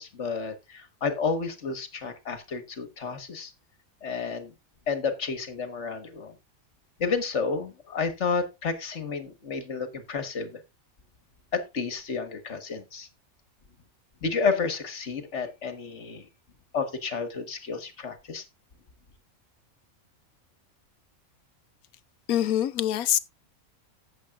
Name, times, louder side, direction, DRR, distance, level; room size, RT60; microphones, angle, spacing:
voice 1, 0.0-3.5 4.0-4.5 4.9-6.3 7.0-10.6 11.5-13.1 14.2-16.3 16.7-18.4, left 5 dB, 55° left, 1.8 m, -31 dB
voice 2, 22.3-23.2, left 11 dB, 85° left, 1.2 m, -24 dB
14.5 x 7.8 x 2.5 m
omnidirectional pair, 1.5 m